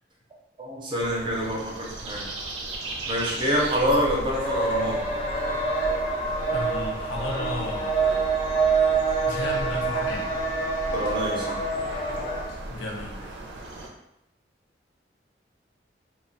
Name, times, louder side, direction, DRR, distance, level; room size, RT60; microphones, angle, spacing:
voice 1, 0.6-2.3 3.1-5.0 10.9-11.6, equal, 25° right, -3 dB, 0.5 m, -26 dB
sound 1, 1.0-13.9, right 2 dB, 90° right, 0.4 m, -38 dB
sound 2, 3.9-12.5, right 3 dB, 30° left, 0.3 m, -26 dB
voice 2, 6.5-8.4 9.3-10.3 12.7-13.5, left 2 dB, 90° left, -1 dB, 0.6 m, -34 dB
2.2 x 2.1 x 2.6 m, 0.85 s
head